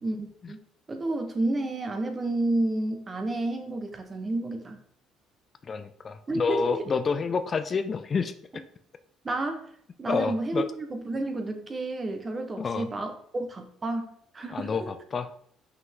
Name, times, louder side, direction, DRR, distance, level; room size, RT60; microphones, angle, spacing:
voice 1, 0.0-0.6 0.9-4.8 6.3-6.8 9.2-9.7 10.0-14.9, right 2 dB, 30° right, 5 dB, 1.1 m, -30 dB
voice 2, 5.7-8.6 10.1-10.7 12.6-12.9 14.5-15.3, left 5 dB, 35° left, 11 dB, 0.4 m, -29 dB
5.8 x 5.5 x 3.7 m, 0.64 s
cardioid pair, 105°, 0 cm